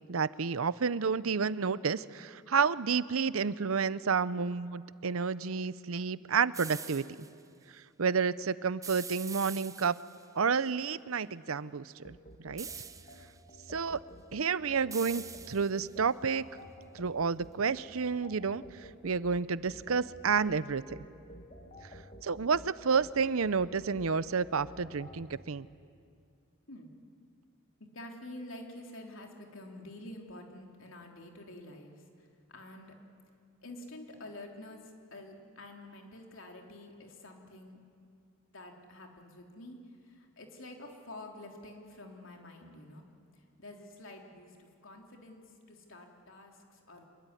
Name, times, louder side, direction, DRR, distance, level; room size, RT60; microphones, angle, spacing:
voice 1, 0.1-7.0 8.0-10.0 10.4-12.1 12.4-12.7 13.7-14.0 14.3-16.4 16.9-18.6 19.0-20.8 22.2-25.7, right 5 dB, 85° right, 17 dB, 0.7 m, -30 dB
sound 1, 6.5-7.3 8.8-10.3 12.6-13.4 14.9-15.9, right 6 dB, 15° right, 0.7 m, -44 dB
sound 2, 12.0-25.2, equal, 35° left, 2.2 m, -52 dB
voice 2, 27.9-32.0 32.5-33.0 33.6-34.8 35.1-37.8 38.5-39.8 40.0-43.0 43.6-47.1, left 1 dB, 65° left, 2 dB, 3.6 m, -48 dB
26.0 x 22.5 x 9.9 m, 2.3 s
head